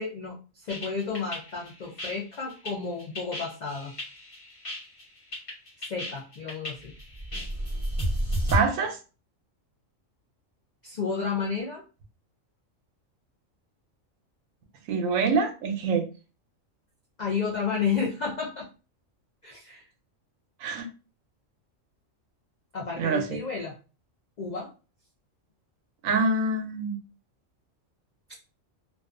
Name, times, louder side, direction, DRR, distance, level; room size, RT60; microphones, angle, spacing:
voice 1, 0.0-3.9 5.9-6.9 10.8-11.8 17.2-18.7 19.4-19.8 22.7-23.7 24.4-24.7, left 5 dB, 75° left, -1 dB, 0.4 m, -31 dB
sound 1, 0.7-8.6, equal, 30° left, 0.9 m, -32 dB
voice 2, 8.5-9.0 14.9-16.1 20.6-20.9 23.0-23.4 26.0-27.0, right 4 dB, 90° right, 7 dB, 1.0 m, -25 dB
2.4 x 2.3 x 2.4 m, 0.34 s
omnidirectional pair, 1.4 m